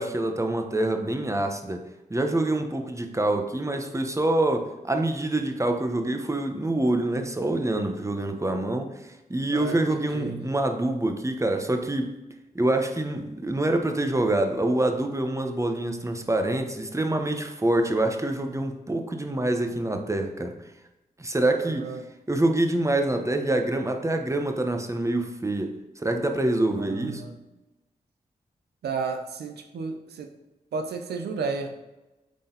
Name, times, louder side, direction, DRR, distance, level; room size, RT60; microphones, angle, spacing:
voice 1, 0.0-1.8 2.1-12.2 12.5-20.5 21.2-21.9 22.3-27.2, right 1 dB, 20° right, 5 dB, 1.1 m, -26 dB
voice 2, 9.5-10.5 21.6-22.0 26.8-27.3 28.8-30.3 30.7-31.7, right 4 dB, 85° right, 5 dB, 0.6 m, -33 dB
8.4 x 4.1 x 4.0 m, 1.0 s
supercardioid pair, 40°, 16 cm